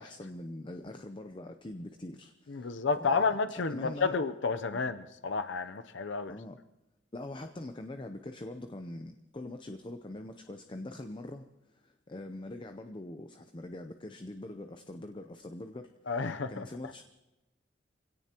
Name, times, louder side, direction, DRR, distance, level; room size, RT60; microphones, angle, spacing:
voice 1, 0.0-3.3 3.7-4.1 4.7-4.8 6.3-6.6 7.1-11.5 11.8-16.2 16.5-17.0, left 1 dB, 25° left, 7 dB, 0.6 m, -43 dB
voice 2, 2.5-6.3 16.1-16.7, left 4 dB, 75° left, 10 dB, 0.7 m, -31 dB
26.0 x 17.0 x 3.0 m, 1.0 s
head